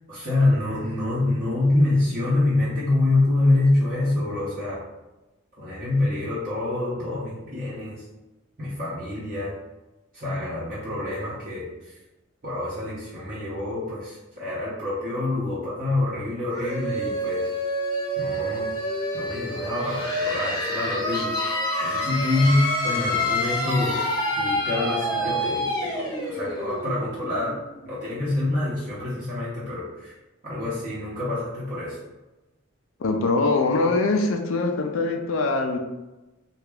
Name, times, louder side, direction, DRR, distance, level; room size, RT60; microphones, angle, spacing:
voice 1, 0.1-4.8 5.6-8.0 8.6-9.6 10.1-11.7 12.4-17.5 18.2-18.7 19.1-23.9 24.4-27.6 27.8-30.1 30.4-32.0, left 2 dB, 40° right, -9 dB, 0.9 m, -26 dB
sound 1, 16.5-28.0, equal, 20° left, 0.7 m, -28 dB
voice 2, 33.0-35.8, left 3 dB, 80° left, 4 dB, 0.4 m, -23 dB
3.4 x 2.4 x 3.4 m, 1.0 s
head